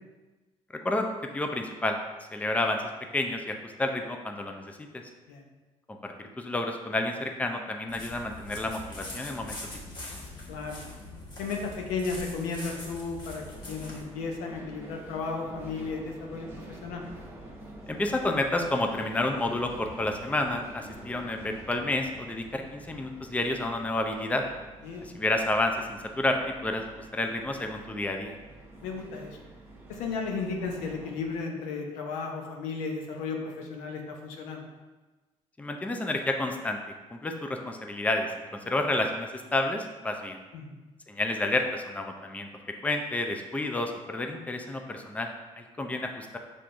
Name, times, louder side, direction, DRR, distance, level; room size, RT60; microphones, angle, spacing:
voice 1, 1.3-2.0 2.3-2.8 3.1-4.8 5.9-9.6 17.9-24.4 25.1-28.4 35.6-36.8 37.1-40.4 41.1-42.5 42.8-45.3 45.6-46.4, left 2 dB, 10° left, 4 dB, 0.5 m, -30 dB
sound 1, 7.9-14.0, left 2 dB, 35° left, 1.4 m, -42 dB
voice 2, 10.5-10.8 11.4-17.0 24.8-25.0 28.8-29.4 29.9-34.6 40.5-40.8, left 4 dB, 90° left, 1 dB, 0.7 m, -34 dB
sound 2, 13.3-31.4, right 1 dB, 20° right, 1.1 m, -47 dB
5.8 x 3.5 x 2.5 m, 1.2 s
supercardioid pair, 80°, 12 cm